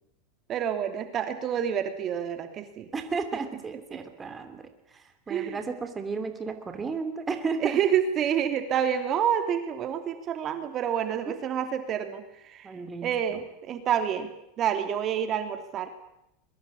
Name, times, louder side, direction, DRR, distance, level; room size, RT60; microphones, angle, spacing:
voice 1, 0.5-2.9 3.9-4.0 5.3-5.6 7.6-12.7 13.0-14.3 14.6-15.9, right 9 dB, 40° right, 7 dB, 3.0 m, -28 dB
voice 2, 2.9-7.8 12.6-13.4, right 4 dB, 20° right, 7 dB, 3.0 m, -34 dB
22.5 x 22.0 x 8.6 m, 0.83 s
hypercardioid pair, 110°, 0 cm